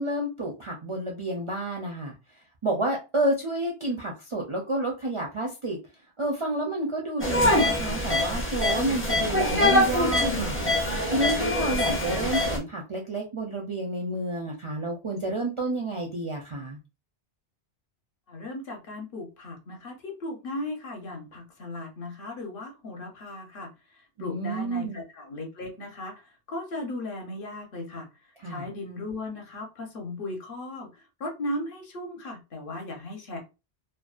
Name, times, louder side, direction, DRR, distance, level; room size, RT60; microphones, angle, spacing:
voice 1, 0.0-2.1 2.6-5.8 6.2-10.6 11.1-16.8 24.2-25.0 28.4-28.7, right 1 dB, 45° right, -1 dB, 0.4 m, -30 dB
sound 1, 7.2-12.6, left 1 dB, 15° left, 0.4 m, -24 dB
voice 2, 18.3-23.7 24.2-26.1 26.5-28.1 28.5-30.9 31.2-33.4, left 1 dB, 60° left, 2 dB, 0.9 m, -36 dB
2.6 x 2.0 x 2.3 m, 0.28 s
omnidirectional pair, 1.1 m